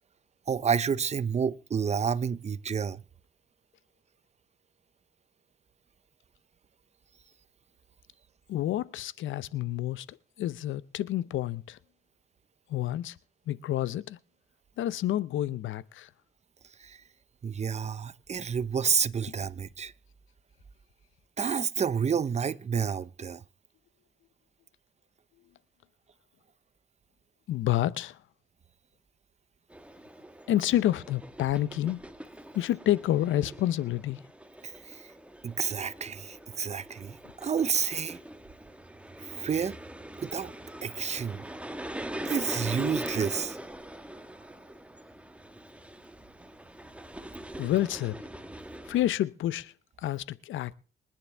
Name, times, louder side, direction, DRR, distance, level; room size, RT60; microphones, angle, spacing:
voice 1, 0.5-3.0 16.8-17.0 17.4-19.9 21.4-23.4 34.6-35.1 35.4-38.2 39.2-39.8 40.2-40.5 40.8-41.4 42.2-43.6, right 6 dB, 35° right, 0.7 m, -30 dB
voice 2, 8.5-11.8 12.7-13.1 13.5-14.2 14.8-16.1 27.5-28.2 30.5-32.0 32.5-34.2 47.6-48.2 48.9-49.7 50.0-50.7, left 13 dB, 75° left, 0.7 m, -29 dB
sound 1, 29.7-49.1, right 1 dB, 5° right, 1.5 m, -42 dB
26.5 x 9.8 x 3.4 m
cardioid pair, 90°, 20 cm